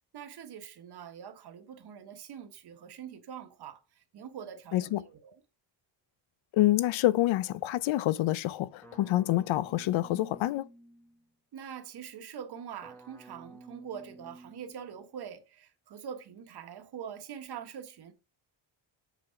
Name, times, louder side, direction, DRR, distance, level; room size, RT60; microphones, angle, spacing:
voice 1, 0.1-5.4 11.5-18.1, right 8 dB, 55° right, 1.3 m, -44 dB
voice 2, 6.5-10.7, left 15 dB, 90° left, 0.6 m, -27 dB
sound 1, 8.8-11.3 12.8-15.1, right 1 dB, 5° left, 1.0 m, -52 dB
8.3 x 3.9 x 5.7 m
wide cardioid pair, 165°, 46 cm